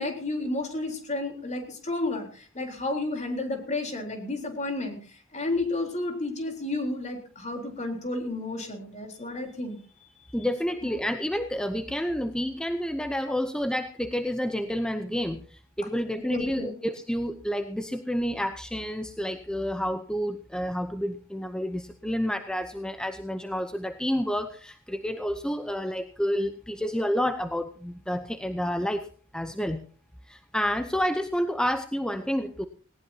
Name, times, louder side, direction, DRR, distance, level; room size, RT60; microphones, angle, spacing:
voice 1, 0.0-9.8 16.3-16.7, left 2 dB, 35° left, 3 dB, 3.9 m, -31 dB
voice 2, 10.3-29.1 29.3-29.8 30.3-32.7, equal, 5° left, 8 dB, 0.7 m, -29 dB
19.0 x 18.5 x 2.8 m, 0.42 s
head